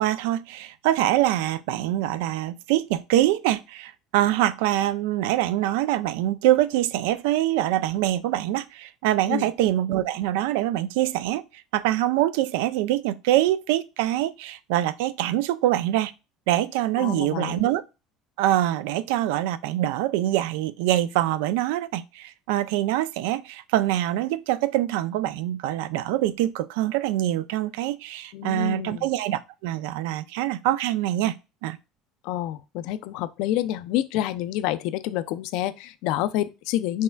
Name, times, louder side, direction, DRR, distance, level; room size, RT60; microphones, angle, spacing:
voice 1, 0.0-11.4 11.7-16.1 16.5-17.8 18.4-31.3 31.6-31.8, right 14 dB, 80° right, 0.4 m, -24 dB
voice 2, 17.0-17.6 28.3-29.1 32.2-37.0, left 13 dB, 60° left, 0.4 m, -28 dB
5.5 x 3.3 x 2.2 m
cardioid pair, 175°, 0 cm